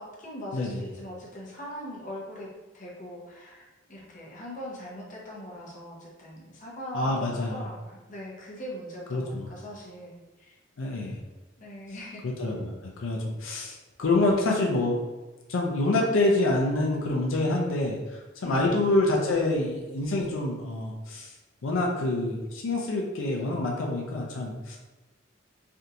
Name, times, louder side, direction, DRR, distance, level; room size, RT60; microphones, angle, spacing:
voice 1, 0.0-10.6 11.6-12.3 18.4-18.8, equal, 40° left, -3 dB, 0.7 m, -41 dB
voice 2, 0.5-0.8 6.9-7.6 9.1-9.5 10.8-11.2 12.2-15.0 15.5-21.3 21.6-24.8, left 2 dB, 85° left, -1 dB, 0.5 m, -27 dB
3.4 x 2.5 x 2.8 m, 1.1 s
head